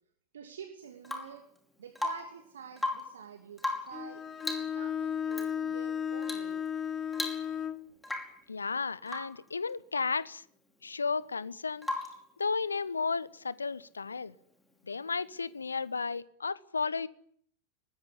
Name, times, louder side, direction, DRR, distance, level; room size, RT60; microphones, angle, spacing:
voice 1, 0.3-1.4 1.8-4.2 4.6-6.6, right 7 dB, 65° right, 5 dB, 2.8 m, -47 dB
Rain / Water tap faucet / Drip, 1.0-1.4 1.9-2.4 2.7-3.2 3.6-4.0 4.4-4.8 5.3-5.5 6.2-6.5 6.8-6.9 7.1-7.7 8.0-8.4 9.1-9.4 11.8-12.3 14.2-14.3, left 2 dB, 5° left, 5.2 m, -36 dB
Bowed string instrument, 3.9-7.9, left 8 dB, 25° left, 1.3 m, -34 dB
voice 2, 8.5-10.4 10.8-11.9 12.4-14.3 14.9-17.1, left 4 dB, 75° left, 18 dB, 1.1 m, -33 dB
23.5 x 20.0 x 9.8 m, 0.65 s
figure-of-eight pair, 90°, 0 cm